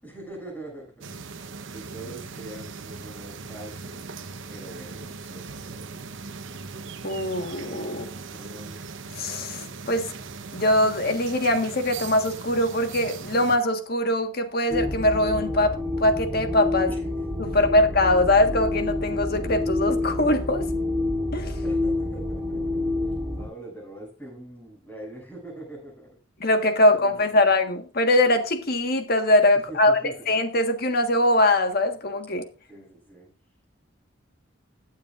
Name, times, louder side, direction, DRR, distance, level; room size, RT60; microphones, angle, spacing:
voice 1, 0.0-1.4 1.7-4.0 4.5-6.1 7.9-8.8 16.9-17.1 17.4-17.5 21.6-22.8 23.4-26.1 26.7-27.5 29.7-30.4 32.7-33.3, right 1 dB, 10° left, -3 dB, 6.9 m, -43 dB
sound 1, 1.0-13.6, right 4 dB, 70° right, 1.0 m, -39 dB
voice 2, 7.0-8.1 9.1-10.1 10.5-16.9 17.4-20.7 21.3-21.6 26.4-32.5, left 1 dB, 50° left, 6 dB, 1.5 m, -22 dB
sound 2, 14.7-23.5, left 2 dB, 20° right, 4.1 m, -28 dB
21.0 x 7.4 x 2.5 m, 0.34 s
head